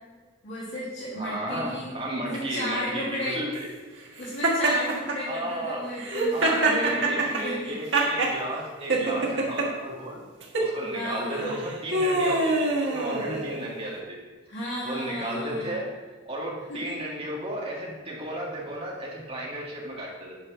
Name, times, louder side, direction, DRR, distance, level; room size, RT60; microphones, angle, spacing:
voice 1, 0.4-1.9 2.2-3.4 4.2-7.8 10.9-11.6 14.5-15.8 16.7-17.0, equal, 75° left, -8 dB, 2.5 m, -34 dB
voice 2, 1.2-3.7 5.3-5.9 6.3-10.2 10.6-14.2 14.8-20.4, right 1 dB, 30° right, -4 dB, 1.9 m, -34 dB
Laughter, 4.4-5.2 6.0-8.4 8.9-9.7 10.4-10.7 11.4-13.6, right 2 dB, 65° right, 1.6 m, -24 dB
8.7 x 4.7 x 6.1 m, 1.4 s
head